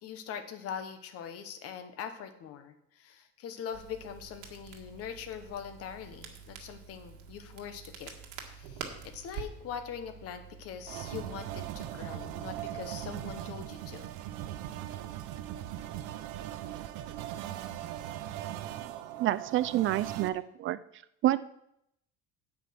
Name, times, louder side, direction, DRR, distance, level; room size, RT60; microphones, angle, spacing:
voice 1, 0.0-8.1 8.4-14.1, left 8 dB, 50° left, 8 dB, 1.3 m, -42 dB
Crackle, 3.7-11.7, right 7 dB, 70° right, 1.9 m, -47 dB
sound 1, 10.9-20.3, right 12 dB, 85° right, 0.8 m, -39 dB
voice 2, 19.2-20.8 21.2-21.4, right 14 dB, 40° right, 15 dB, 0.4 m, -28 dB
8.6 x 8.6 x 5.9 m, 0.76 s
cardioid pair, 155°, 31 cm